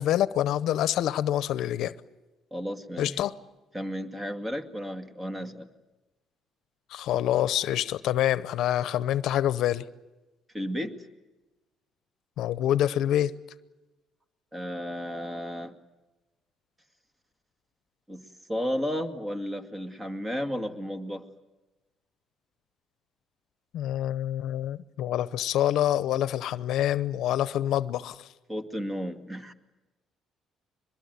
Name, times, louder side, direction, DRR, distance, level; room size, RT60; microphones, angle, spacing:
voice 1, 0.0-1.9 3.0-3.3 6.9-9.8 12.4-13.3 23.7-28.3, left 12 dB, 75° left, 0.8 m, -26 dB
voice 2, 2.5-3.2 3.7-5.7 10.5-10.9 14.5-15.8 18.1-21.2 28.5-29.5, equal, 15° right, 2.2 m, -33 dB
23.5 x 21.0 x 9.5 m
cardioid pair, 95°, 0 cm